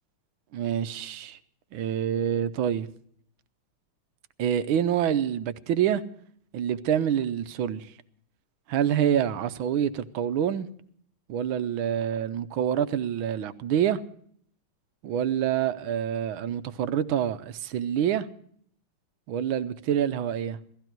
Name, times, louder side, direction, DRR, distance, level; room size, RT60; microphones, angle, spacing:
voice 1, 0.5-1.4 1.7-2.9 4.4-6.0 6.5-7.9 8.7-10.7 11.3-14.0 15.0-18.3 19.3-20.6, right 9 dB, 75° right, 1.6 m, -26 dB
17.0 x 15.0 x 4.5 m
omnidirectional pair, 2.3 m